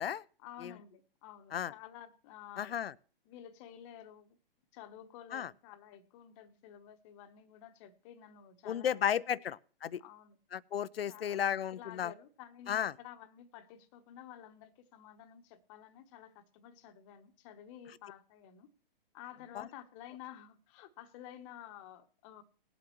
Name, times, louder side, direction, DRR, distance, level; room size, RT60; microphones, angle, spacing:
voice 1, 0.4-2.8 3.2-4.3 4.7-9.1 9.3-9.4 10.0-10.4 11.1-18.7 19.1-22.4, left 10 dB, 35° left, 1.0 m, -52 dB
voice 2, 2.6-2.9 5.3-5.5 8.7-10.0 10.5-12.1 12.7-12.9, left 9 dB, 85° left, 0.5 m, -33 dB
19.5 x 7.9 x 3.0 m
hypercardioid pair, 125°, 29 cm